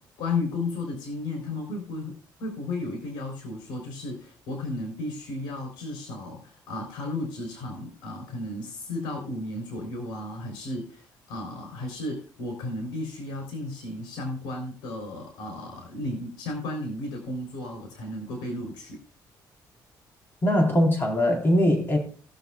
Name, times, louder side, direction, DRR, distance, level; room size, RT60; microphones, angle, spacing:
voice 1, 0.0-19.0, left 2 dB, 85° left, 3.8 m, -34 dB
voice 2, 20.4-22.0, left 1 dB, 25° left, 3.8 m, -21 dB
19.5 x 6.8 x 2.4 m
cardioid pair, 105°, 8 cm